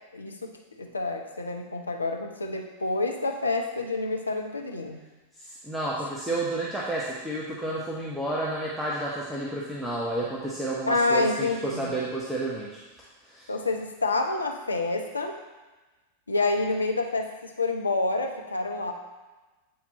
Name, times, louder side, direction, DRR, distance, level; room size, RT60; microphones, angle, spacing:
voice 1, 0.1-0.5 0.8-5.0 10.9-11.9 13.5-15.3 16.3-18.9, left 3 dB, 80° left, 4 dB, 0.7 m, -28 dB
voice 2, 5.4-12.8 13.2-13.5, right 2 dB, 5° right, -6 dB, 1.0 m, -31 dB
8.6 x 4.4 x 4.1 m, 1.2 s
figure-of-eight pair, 90°, 0 cm